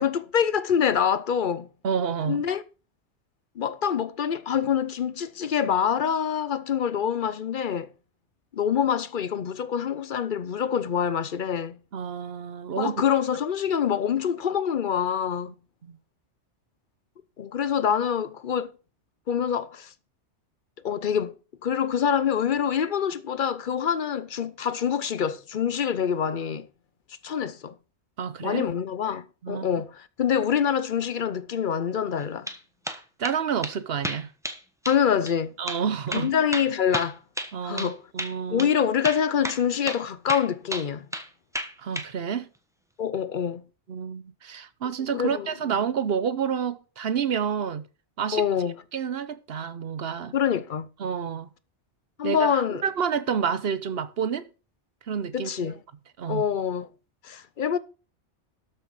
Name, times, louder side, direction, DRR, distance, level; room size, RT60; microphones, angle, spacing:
voice 1, 0.0-1.7 2.3-2.6 3.6-7.9 8.5-11.8 12.8-15.5 17.4-18.7 19.3-19.9 20.8-21.3 21.6-26.7 27.2-27.7 28.4-32.5 34.9-35.6 36.1-37.2 37.6-38.0 38.5-41.1 43.0-43.6 45.1-45.5 48.3-48.8 50.3-50.9 52.2-52.8 55.3-55.8 56.3-56.9 57.2-57.8, left 8 dB, 50° left, 0.7 m, -25 dB
voice 2, 1.8-2.4 11.9-12.9 15.8-16.0 28.2-28.7 29.4-29.7 33.2-34.3 35.6-36.3 37.5-38.7 41.8-42.5 43.9-47.8 48.2-48.4 48.9-50.3 51.0-51.5 52.2-54.5 55.1-55.7 56.2-56.4, right 7 dB, 60° right, 1.0 m, -29 dB
sound 1, 32.2-32.6 32.8-33.4 33.6-33.7 34.0-34.6 34.8-35.0 35.3-35.4 35.7-35.8 36.1-37.9 38.2-38.3 38.6-38.7 39.0-39.6 39.9-40.0 40.3-41.3 41.5-42.1, equal, 5° right, 1.1 m, -32 dB
12.5 x 6.5 x 4.8 m
omnidirectional pair, 1.2 m